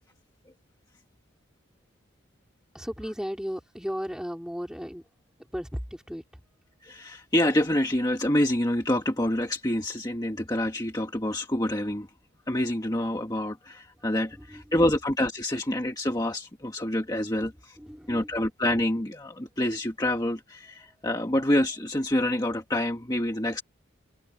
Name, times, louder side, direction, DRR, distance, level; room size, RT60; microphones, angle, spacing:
voice 1, 2.7-5.0 5.4-6.4 14.3-14.7 17.4-18.4 20.9-21.0, equal, 5° right, 4.3 m, -36 dB
voice 2, 6.8-12.1 12.5-17.8 18.1-23.6, left 1 dB, 20° left, 1.6 m, -27 dB
head